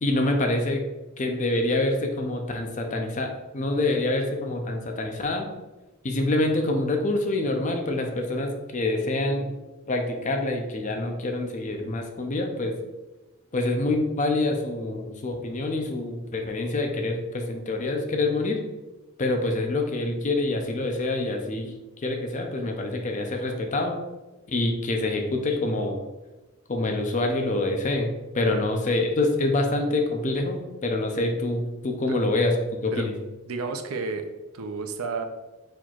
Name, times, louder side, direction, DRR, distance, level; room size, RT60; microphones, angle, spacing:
voice 1, 0.0-0.8 1.2-5.5 6.0-9.5 9.9-12.8 13.5-18.6 19.2-21.8 22.0-24.0 24.5-26.0 26.7-28.1 28.3-32.6 32.8-33.1, left 2 dB, 35° left, 3 dB, 0.5 m, -26 dB
voice 2, 33.5-34.3 34.5-35.3, right 4 dB, 85° right, 6 dB, 0.5 m, -31 dB
4.4 x 4.3 x 2.4 m, 1.1 s
head